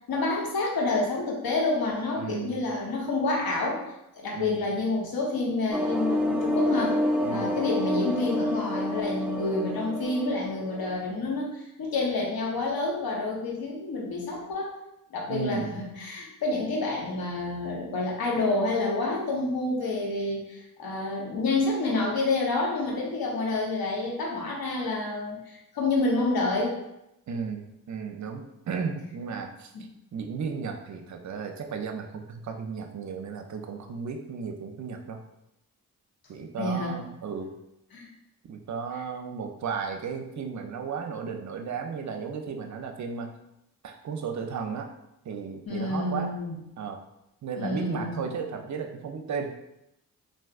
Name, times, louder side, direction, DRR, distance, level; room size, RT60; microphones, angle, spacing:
voice 1, 0.1-3.8 4.1-7.0 7.3-14.8 15.1-26.8 36.6-36.9 37.9-38.1 45.7-46.5 47.6-48.2, left 2 dB, 65° left, -2 dB, 1.0 m, -28 dB
voice 2, 2.2-2.6 4.3-4.7 7.2-7.5 15.3-15.8 27.3-29.7 30.1-35.2 36.3-37.5 38.4-43.3 43.8-44.9 45.2-46.4 46.8-47.0 47.4-49.5, right 5 dB, 50° right, 4 dB, 0.6 m, -34 dB
sound 1, 5.7-11.0, left 1 dB, 5° right, 0.5 m, -28 dB
3.3 x 2.6 x 2.4 m, 0.85 s
supercardioid pair, 45°, 38 cm